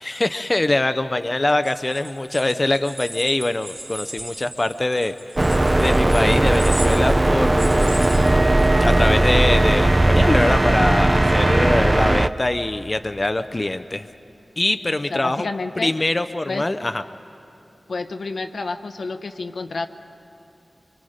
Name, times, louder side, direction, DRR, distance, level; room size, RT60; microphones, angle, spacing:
voice 1, 0.0-5.1 5.7-8.1 8.8-14.1 14.6-15.5 15.8-17.0, left 2 dB, 30° left, 10 dB, 0.5 m, -23 dB
sound 1, 1.5-8.9, right 1 dB, 40° right, 2.2 m, -37 dB
sound 2, 5.4-12.3, right 1 dB, 25° right, 0.4 m, -17 dB
Wind instrument woodwind instrument, 8.2-12.2, right 2 dB, 80° right, 3.0 m, -28 dB
voice 2, 15.1-15.9 16.5-16.6 17.9-19.9, left 3 dB, 80° left, 8 dB, 0.9 m, -29 dB
25.0 x 25.0 x 5.0 m, 2.8 s
wide cardioid pair, 90°, 0 cm